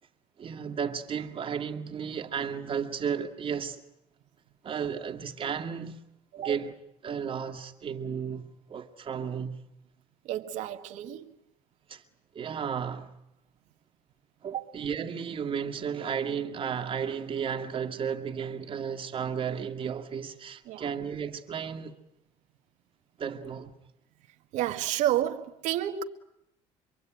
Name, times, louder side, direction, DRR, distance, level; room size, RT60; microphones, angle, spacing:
voice 1, 0.4-3.8 4.6-6.0 6.4-6.7 7.0-9.6 11.9-12.0 12.3-13.1 14.4-22.0 23.2-23.7, right 7 dB, 45° right, 2.2 m, -33 dB
voice 2, 10.3-11.3 14.5-14.6 20.7-20.8 24.5-26.0, right 12 dB, 75° right, 1.9 m, -30 dB
26.5 x 23.0 x 9.3 m
supercardioid pair, 90°, 13 cm